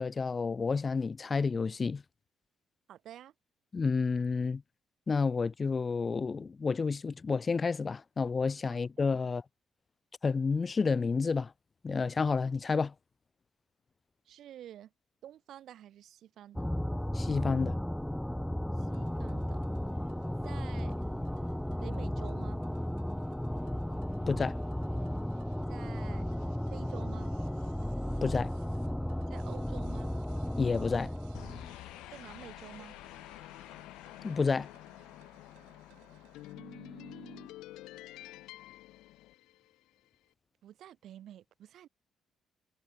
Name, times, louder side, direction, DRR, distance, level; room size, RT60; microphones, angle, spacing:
voice 1, 0.0-2.0 3.7-4.6 5.1-9.4 10.2-11.5 11.8-12.9 17.1-17.8 24.3-24.6 28.2-28.5 30.6-31.1 34.2-34.7, left 4 dB, 40° left, 0.9 m, -30 dB
voice 2, 2.9-3.3 8.7-8.8 9.2-9.3 14.3-14.9 15.2-16.7 18.7-19.6 20.4-21.0 21.8-22.6 25.7-26.3 26.7-27.3 29.3-30.1 32.1-33.0 36.5-37.5 40.6-41.9, right 11 dB, 70° right, 6.5 m, -49 dB
sound 1, 16.5-31.7, equal, 5° left, 0.4 m, -34 dB
sound 2, 18.8-36.6, right 25 dB, 90° right, 6.1 m, -64 dB
sound 3, 31.3-39.9, left 17 dB, 80° left, 7.2 m, -49 dB
supercardioid pair, 60°, 0 cm